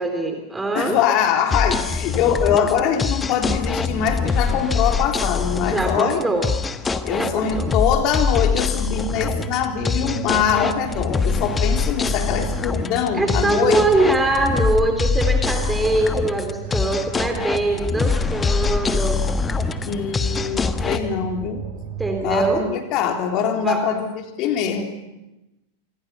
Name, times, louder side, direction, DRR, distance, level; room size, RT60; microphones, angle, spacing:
voice 1, 0.0-1.0 5.6-6.5 7.1-7.7 13.2-19.2 22.0-22.6 23.6-23.8, right 2 dB, 10° right, 4 dB, 3.2 m, -22 dB
voice 2, 0.7-6.2 7.0-13.8 19.9-21.6 22.2-24.1 24.4-24.8, left 8 dB, 40° left, 4 dB, 3.6 m, -23 dB
sound 1, 1.5-21.0, left 5 dB, 15° left, 1.4 m, -24 dB
sound 2, 9.1-22.6, right 7 dB, 35° right, 6.0 m, -34 dB
27.5 x 25.5 x 5.8 m, 0.96 s
figure-of-eight pair, 90°, 0 cm